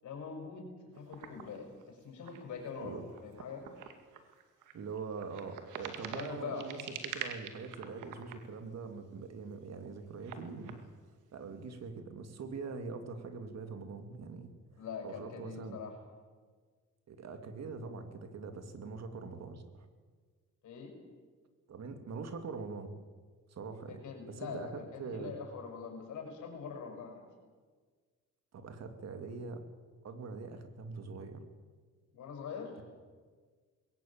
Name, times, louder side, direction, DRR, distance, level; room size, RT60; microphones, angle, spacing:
voice 1, 0.0-3.7 6.1-6.7 14.8-16.0 20.6-21.0 23.9-27.3 32.1-32.8, left 5 dB, 75° left, 3 dB, 6.3 m, -43 dB
sound 1, 0.9-9.1 9.5-10.8, right 8 dB, 90° right, 2.3 m, -46 dB
voice 2, 4.7-10.8 11.3-14.5 15.0-15.8 17.1-19.9 21.7-22.9 23.5-25.3 28.5-29.6 30.0-31.4, right 4 dB, 60° right, 7 dB, 2.8 m, -43 dB
21.0 x 18.0 x 8.9 m, 1.5 s
cardioid pair, 90°, 30 cm